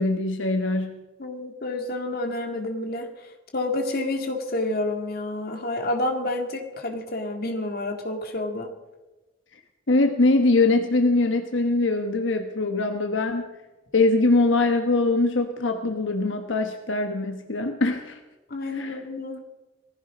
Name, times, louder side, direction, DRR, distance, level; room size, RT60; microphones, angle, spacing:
voice 1, 0.0-1.0 9.9-13.5 13.9-18.2 18.7-19.0, left 2 dB, 80° left, 5 dB, 1.2 m, -22 dB
voice 2, 1.2-8.7 18.5-19.4, left 2 dB, 50° left, 4 dB, 2.1 m, -29 dB
19.0 x 15.0 x 5.0 m, 1.1 s
head